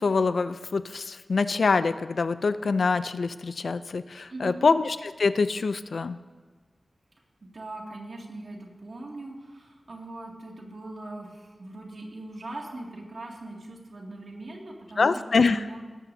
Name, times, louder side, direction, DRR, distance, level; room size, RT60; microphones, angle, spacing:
voice 1, 0.0-6.2 15.0-15.6, left 4 dB, 80° left, 12 dB, 0.5 m, -25 dB
voice 2, 4.3-4.7 7.4-15.8, right 2 dB, 70° right, -1 dB, 2.4 m, -40 dB
19.0 x 13.0 x 2.8 m, 1.4 s
wide cardioid pair, 80°, 0 cm